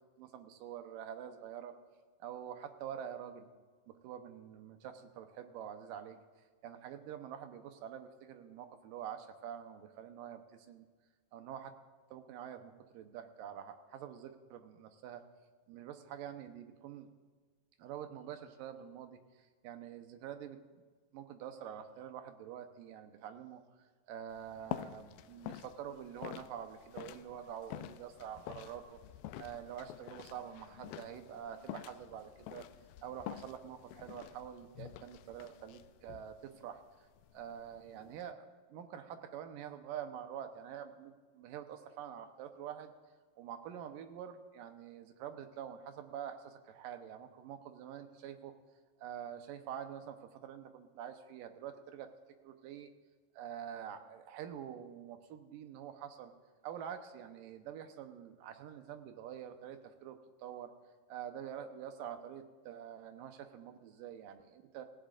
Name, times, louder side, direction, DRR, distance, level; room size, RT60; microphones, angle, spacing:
voice 1, 0.0-1.8 2.2-3.5 3.9-10.9 11.3-11.8 12.1-15.2 15.7-17.1 17.8-20.8 21.1-29.0 29.4-32.7 33.0-37.1 37.3-42.9 43.4-48.5 49.0-52.1 52.4-52.9 53.3-56.3 56.6-60.7 61.1-64.8, right 9 dB, 80° right, 7 dB, 2.6 m, -46 dB
sound 1, 24.3-38.3, left 13 dB, 85° left, 2.2 m, -48 dB
27.5 x 16.0 x 2.5 m, 1.5 s
omnidirectional pair, 3.9 m